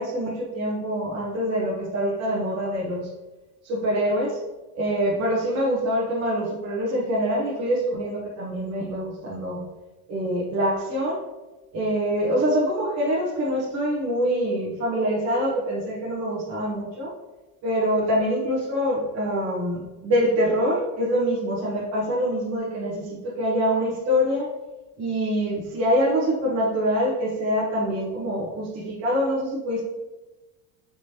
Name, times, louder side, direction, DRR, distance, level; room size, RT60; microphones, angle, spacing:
voice 1, 0.0-3.1 3.6-4.4 4.7-9.6 10.1-11.2 11.7-17.1 17.6-24.5 25.0-29.8, equal, 45° right, -6 dB, 1.2 m, -25 dB
5.1 x 3.3 x 2.8 m, 1.1 s
cardioid pair, 150°, 37 cm